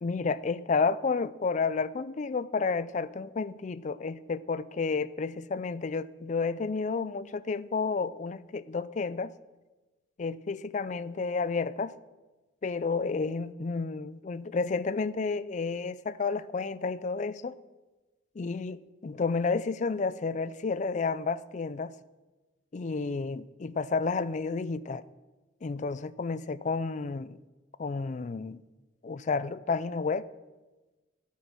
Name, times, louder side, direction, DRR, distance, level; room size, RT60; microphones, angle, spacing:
voice 1, 0.0-9.3 10.2-11.9 12.6-17.6 18.4-21.9 22.7-25.0 25.6-27.4 27.8-28.6 29.0-30.3, left 4 dB, 40° left, 17 dB, 0.4 m, -31 dB
14.0 x 8.4 x 6.1 m, 1.2 s
head